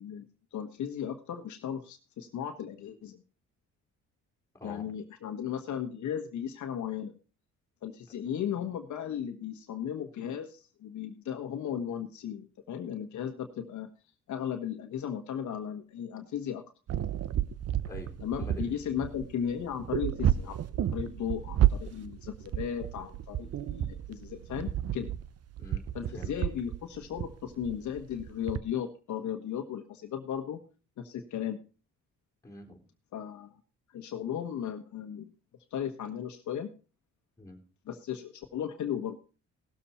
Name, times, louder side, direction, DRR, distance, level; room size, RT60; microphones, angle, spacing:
voice 1, 0.0-3.2 4.6-7.1 7.8-13.9 14.3-16.6 18.2-20.6 20.9-25.1 25.9-30.6 31.0-31.6 33.1-33.6 33.9-35.3 35.7-36.7 37.9-39.2, left 9 dB, 70° left, 5 dB, 1.5 m, -36 dB
voice 2, 4.5-4.9 17.8-18.8 25.6-25.9 26.1-26.3 32.4-32.8 37.4-37.6, left 2 dB, 10° left, 0 dB, 3.6 m, -45 dB
sound 1, 16.9-28.6, right 11 dB, 55° right, 0.8 m, -31 dB
18.0 x 7.1 x 4.3 m, 0.34 s
cardioid pair, 90°, 30 cm